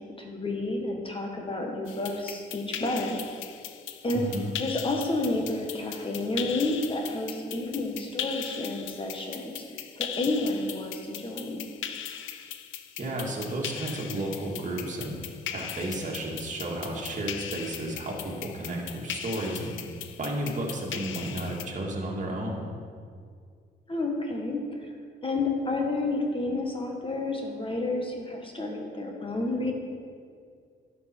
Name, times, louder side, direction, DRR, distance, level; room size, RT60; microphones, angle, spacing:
voice 1, 0.0-3.2 4.0-4.3 4.6-9.5 10.0-11.7 23.9-24.9 25.2-29.7, left 2 dB, 25° left, 1 dB, 1.5 m, -30 dB
sound 1, 1.9-21.7, left 9 dB, 75° left, 0.6 m, -39 dB
voice 2, 4.1-4.5 13.0-15.2 15.5-19.7 20.2-22.6, right 1 dB, 40° right, -2 dB, 2.1 m, -32 dB
11.5 x 6.1 x 4.6 m, 2.2 s
cardioid pair, 90°, 20 cm